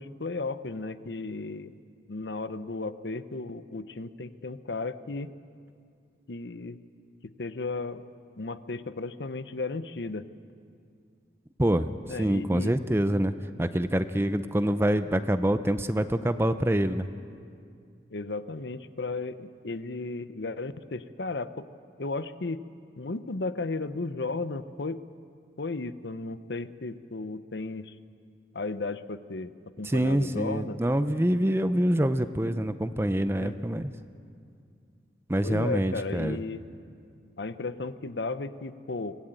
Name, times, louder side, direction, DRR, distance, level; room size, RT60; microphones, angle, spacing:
voice 1, 0.0-1.7 2.1-5.3 6.3-6.8 7.4-8.0 8.4-10.3 12.1-12.8 18.1-21.7 22.0-22.6 23.0-25.0 25.6-27.9 28.5-30.8 33.4-33.6 35.4-36.6 37.4-39.2, left 3 dB, 70° left, 12 dB, 0.8 m, -34 dB
voice 2, 11.6-11.9 12.2-13.3 13.6-17.1 29.8-33.9 35.3-36.4, right 1 dB, 15° right, 11 dB, 0.6 m, -26 dB
24.5 x 17.0 x 9.1 m, 2.3 s
head